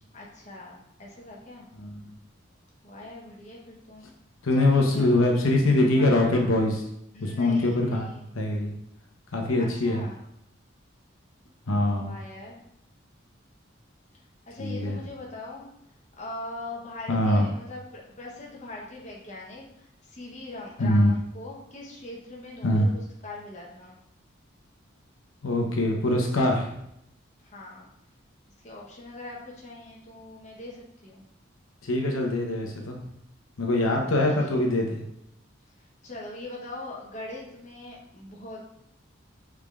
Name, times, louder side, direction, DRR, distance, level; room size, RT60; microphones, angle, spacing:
voice 1, 0.1-1.7 2.8-4.0 4.5-5.5 5.9-6.2 7.1-8.3 9.6-10.2 11.9-12.6 14.5-15.7 16.2-24.0 27.4-27.9 28.6-31.2 34.0-34.7 36.0-38.6, left 2 dB, 35° left, -2 dB, 0.8 m, -42 dB
voice 2, 4.4-6.8 7.2-8.1 8.3-8.7 9.3-10.0 11.7-12.1 14.6-15.0 17.1-17.4 20.8-21.1 22.6-22.9 25.4-26.8 31.8-33.0 33.6-35.0, left 1 dB, 90° left, 1 dB, 0.8 m, -23 dB
5.1 x 3.6 x 2.3 m, 0.77 s
head